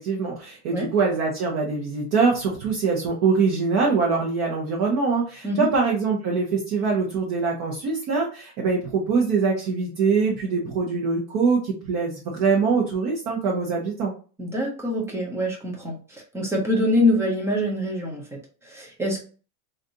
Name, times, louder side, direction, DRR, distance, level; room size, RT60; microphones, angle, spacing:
voice 1, 0.0-14.1, right 4 dB, 40° right, -2 dB, 0.9 m, -23 dB
voice 2, 14.4-19.2, left 1 dB, 5° right, -1 dB, 0.4 m, -25 dB
3.2 x 2.6 x 2.6 m, 0.38 s
supercardioid pair, 145°, 46 cm